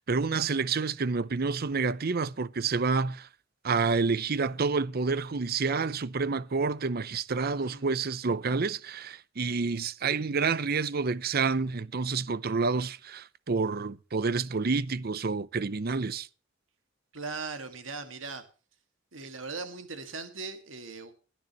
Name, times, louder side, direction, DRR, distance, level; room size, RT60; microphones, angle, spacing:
voice 1, 0.0-3.3 3.6-16.3, right 4 dB, 50° right, 0.7 m, -29 dB
voice 2, 17.1-18.4 19.1-21.1, right 4 dB, 80° right, 2.0 m, -39 dB
21.0 x 10.5 x 3.0 m
head